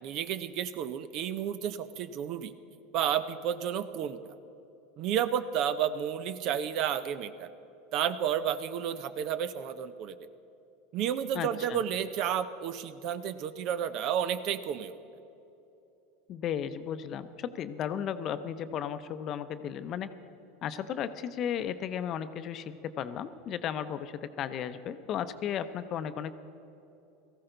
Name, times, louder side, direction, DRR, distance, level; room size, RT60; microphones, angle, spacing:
voice 1, 0.0-2.5 2.9-4.2 5.0-7.5 7.9-10.1 10.9-15.0, right 9 dB, 55° right, 13 dB, 0.6 m, -31 dB
voice 2, 11.3-11.8 16.3-20.1 20.6-26.3, left 9 dB, 45° left, 12 dB, 0.7 m, -35 dB
18.5 x 14.5 x 3.9 m, 2.8 s
hypercardioid pair, 90°, 0 cm